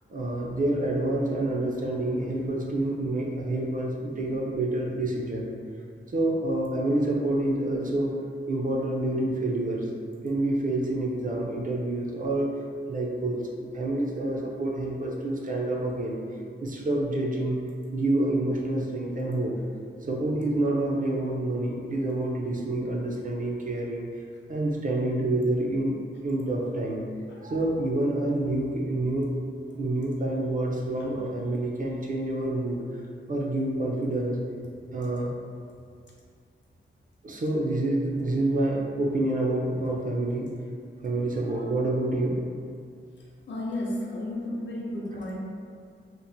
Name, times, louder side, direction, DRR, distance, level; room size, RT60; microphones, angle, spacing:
voice 1, 0.1-5.5 6.1-8.1 8.5-9.9 10.2-12.5 12.9-16.2 16.6-17.6 17.9-19.6 20.1-24.0 24.5-26.0 26.2-27.0 27.4-29.3 29.8-32.8 33.3-34.4 34.9-35.3 37.2-40.5 41.0-42.4, right 1 dB, 40° right, -2 dB, 0.4 m, -27 dB
voice 2, 43.5-45.4, left 1 dB, 65° left, -4 dB, 0.6 m, -32 dB
2.9 x 2.0 x 2.5 m, 2.2 s
wide cardioid pair, 130°, 20 cm